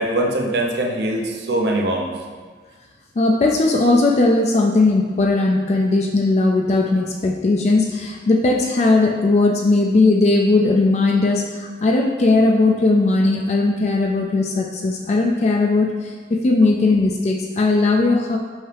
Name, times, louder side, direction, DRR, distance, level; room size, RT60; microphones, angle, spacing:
voice 1, 0.0-2.1, right 1 dB, 70° right, 1 dB, 0.8 m, -22 dB
voice 2, 3.2-18.4, left 2 dB, 40° left, 1 dB, 0.4 m, -18 dB
5.5 x 5.5 x 3.3 m, 1.5 s
head